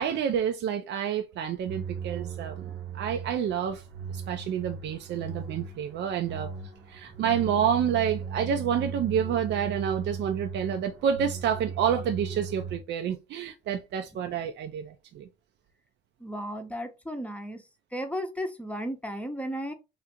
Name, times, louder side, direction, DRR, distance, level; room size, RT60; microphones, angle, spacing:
voice 1, 0.0-6.5 6.9-15.3, right 8 dB, 65° right, 0.4 m, -29 dB
sound 1, 1.7-12.8, right 6 dB, 90° right, 0.8 m, -37 dB
voice 2, 16.2-17.6 17.9-19.7, equal, 5° left, 0.7 m, -34 dB
3.2 x 2.5 x 2.8 m
cardioid pair, 90°, 20 cm